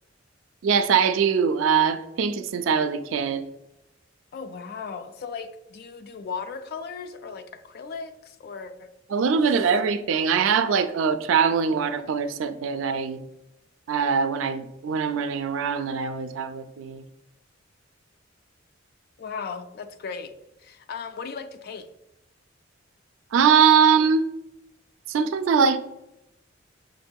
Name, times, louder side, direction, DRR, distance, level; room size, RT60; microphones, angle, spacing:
voice 1, 0.6-3.4 9.1-13.2 13.9-17.0 23.3-24.3 25.1-25.8, right 6 dB, 80° right, 10 dB, 0.3 m, -22 dB
voice 2, 4.3-8.9 19.2-20.3 20.6-21.9, left 5 dB, 55° left, 9 dB, 0.3 m, -36 dB
5.7 x 2.7 x 2.2 m, 0.89 s
head